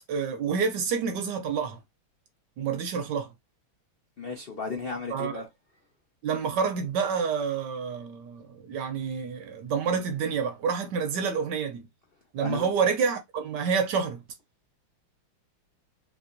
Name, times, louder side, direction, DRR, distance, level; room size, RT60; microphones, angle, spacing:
voice 1, 0.1-1.8 2.6-3.3 5.1-5.4 6.2-11.9 12.3-14.2, right 6 dB, 70° right, 1.1 m, -28 dB
voice 2, 4.2-5.5 12.4-12.7, left 4 dB, 70° left, 0.5 m, -34 dB
3.5 x 3.4 x 2.6 m
omnidirectional pair, 2.4 m